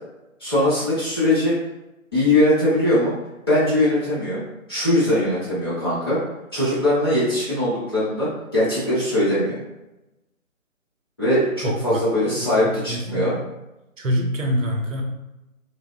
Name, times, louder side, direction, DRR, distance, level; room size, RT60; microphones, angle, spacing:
voice 1, 0.4-1.6 2.1-3.1 3.5-4.4 4.7-6.2 6.5-9.6 11.2-13.3, left 1 dB, 20° left, -12 dB, 0.7 m, -21 dB
voice 2, 11.6-12.3 12.6-13.4 14.0-15.0, equal, 65° right, 1 dB, 0.7 m, -25 dB
2.7 x 2.0 x 2.5 m, 0.95 s
figure-of-eight pair, 150°, 42 cm